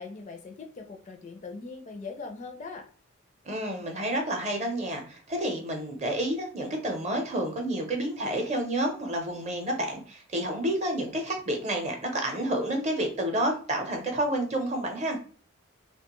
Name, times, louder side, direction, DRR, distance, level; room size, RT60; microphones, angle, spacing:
voice 1, 0.0-2.9, left 4 dB, 35° left, 4 dB, 0.4 m, -41 dB
voice 2, 3.5-15.2, right 1 dB, 35° right, 3 dB, 0.6 m, -29 dB
2.8 x 2.2 x 2.9 m, 0.41 s
head